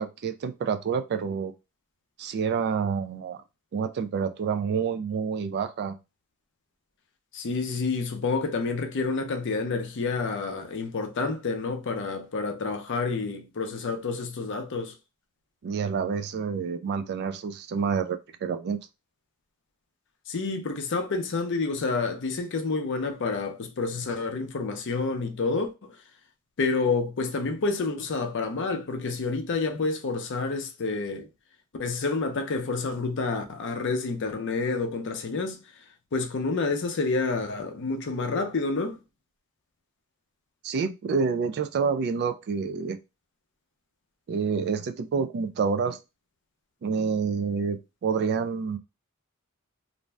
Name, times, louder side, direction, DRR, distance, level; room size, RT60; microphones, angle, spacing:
voice 1, 0.0-1.5 2.2-3.4 3.7-6.0 15.6-18.8 40.6-43.0 44.3-46.0 46.8-48.8, right 6 dB, 50° right, 0.3 m, -28 dB
voice 2, 7.3-14.9 20.3-25.7 26.6-31.3 31.8-35.6 36.1-39.0, left 4 dB, 60° left, 0.5 m, -29 dB
2.5 x 2.1 x 3.2 m
head